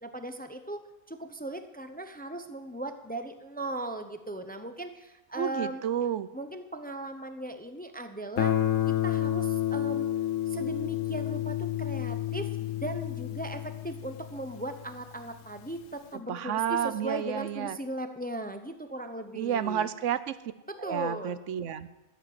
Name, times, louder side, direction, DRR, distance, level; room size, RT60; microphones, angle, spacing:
voice 1, 0.0-5.8 6.3-8.6 8.9-10.1 10.5-19.9 20.7-21.4, right 1 dB, 10° left, 8 dB, 0.7 m, -38 dB
voice 2, 5.3-6.3 16.3-17.8 19.4-20.3 20.8-21.9, right 9 dB, 75° right, 14 dB, 1.0 m, -30 dB
Guitar, 8.4-15.1, left 12 dB, 85° left, 1.1 m, -30 dB
14.5 x 8.1 x 7.7 m, 0.98 s
omnidirectional pair, 1.3 m